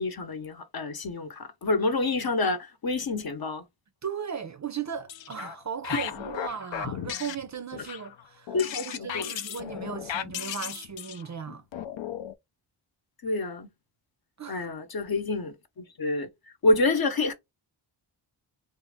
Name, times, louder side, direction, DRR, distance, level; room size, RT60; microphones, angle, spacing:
voice 1, 0.0-3.6 8.5-9.3 13.2-13.7 14.5-16.3 16.6-17.3, left 2 dB, 50° left, 0.9 m, -28 dB
voice 2, 4.0-8.5 8.8-11.6 14.4-14.7, right 7 dB, 40° right, 0.5 m, -36 dB
sound 1, 4.9-5.6 5.8-12.3, left 10 dB, 70° left, 0.6 m, -36 dB
2.8 x 2.5 x 3.5 m
cardioid pair, 55°, 48 cm